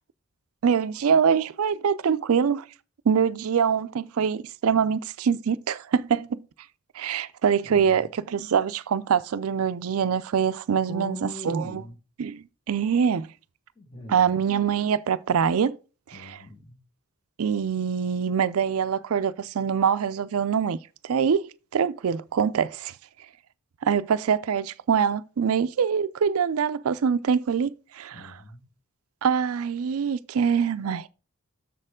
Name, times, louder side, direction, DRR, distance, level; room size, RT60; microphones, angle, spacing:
voice 1, 0.6-2.7 3.1-6.4 6.9-11.8 12.2-13.3 14.1-15.8 16.1-16.4 17.4-20.8 21.0-22.9 23.8-28.3 29.2-31.1, right 7 dB, 80° right, 0.4 m, -24 dB
voice 2, 7.6-8.1 10.9-11.9 13.7-14.4 16.1-16.8 28.1-28.7, left 1 dB, 20° left, 1.6 m, -41 dB
6.8 x 6.6 x 3.6 m
head